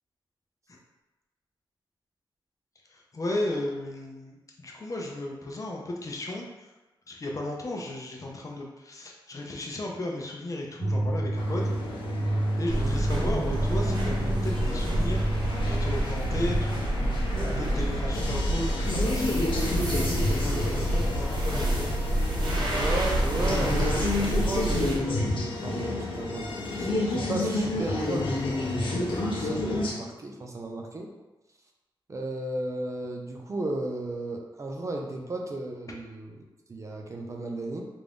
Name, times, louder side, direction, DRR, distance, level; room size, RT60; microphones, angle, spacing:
voice 1, 2.9-6.7 7.1-11.6 12.6-17.2 17.6-21.9, left 1 dB, 40° left, -1 dB, 0.6 m, -35 dB
sound 1, 10.8-16.8, right 1 dB, 85° right, 0.7 m, -30 dB
sound 2, 11.4-29.9, left 2 dB, 75° left, 0.7 m, -31 dB
sound 3, 12.7-25.0, right 1 dB, 60° right, 1.0 m, -28 dB
voice 2, 22.7-31.1 32.1-36.4 36.7-37.9, right 2 dB, 35° right, 1 dB, 0.5 m, -34 dB
3.4 x 2.6 x 3.4 m, 1.1 s
wide cardioid pair, 135°, 9 cm